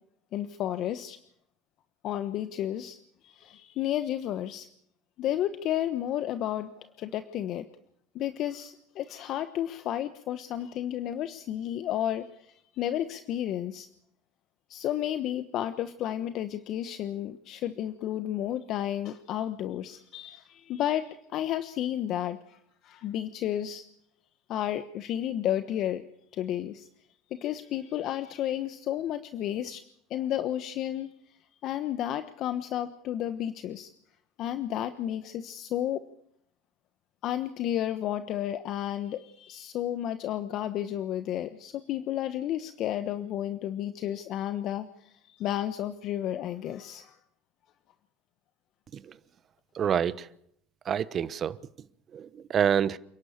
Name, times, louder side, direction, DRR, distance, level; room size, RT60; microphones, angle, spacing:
voice 1, 0.3-1.2 2.0-3.0 3.2-4.7 5.2-7.7 8.1-13.9 14.7-23.8 24.5-26.0 26.3-26.9 27.3-29.8 30.1-31.1 31.6-33.9 34.4-36.0 37.2-47.2, left 11 dB, 55° left, 1.2 m, -32 dB
voice 2, 49.7-50.3 50.9-51.6 52.1-53.0, right 8 dB, 45° right, 1.1 m, -27 dB
28.5 x 11.5 x 8.7 m
hypercardioid pair, 80°, 0 cm